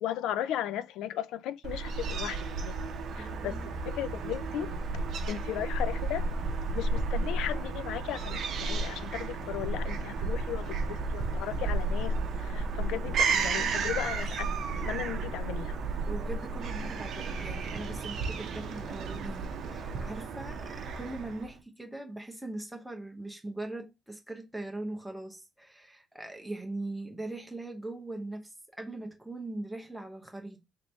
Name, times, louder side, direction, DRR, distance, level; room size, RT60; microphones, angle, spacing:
voice 1, 0.0-2.8 3.1-4.8 5.3-6.3 6.7-14.5 14.8-15.8, left 11 dB, 85° left, 0.4 m, -36 dB
Fowl / Gull seagull, 1.6-21.5, right 3 dB, 50° right, 0.7 m, -33 dB
voice 2, 3.2-3.7 15.9-30.6, right 2 dB, ahead, 0.7 m, -41 dB
3.3 x 3.2 x 3.9 m
cardioid pair, 175°, 0 cm